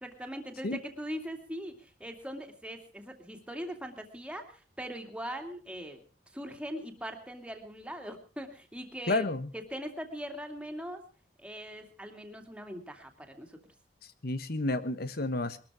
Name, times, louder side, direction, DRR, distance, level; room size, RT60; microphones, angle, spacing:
voice 1, 0.0-6.0 6.3-9.2 9.5-11.0 11.4-13.6, equal, 5° right, 4 dB, 2.6 m, -41 dB
voice 2, 9.1-9.5 14.2-15.6, left 2 dB, 60° left, 13 dB, 1.3 m, -30 dB
22.0 x 13.0 x 4.9 m, 0.37 s
head